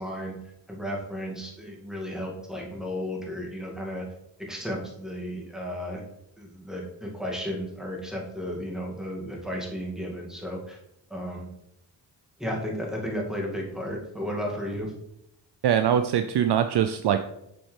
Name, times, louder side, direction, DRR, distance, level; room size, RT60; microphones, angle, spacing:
voice 1, 0.0-4.1 4.4-6.0 6.4-10.8 11.1-11.5 12.4-14.9, equal, ahead, -1 dB, 2.1 m, -34 dB
voice 2, 15.6-17.2, right 9 dB, 55° right, 8 dB, 0.5 m, -22 dB
7.0 x 4.6 x 3.3 m, 0.81 s
supercardioid pair, 40°, 50 cm